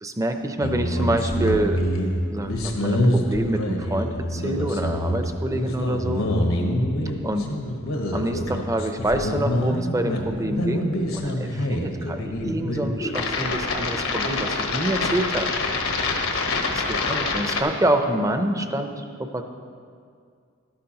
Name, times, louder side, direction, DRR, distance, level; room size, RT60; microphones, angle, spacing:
voice 1, 0.0-1.8 2.3-6.3 7.2-7.5 8.1-15.5 16.7-19.4, right 1 dB, 15° right, 7 dB, 0.6 m, -26 dB
sound 1, 0.6-17.6, left 1 dB, 85° left, 1.2 m, -26 dB
13.5 x 12.0 x 2.9 m, 2.2 s
head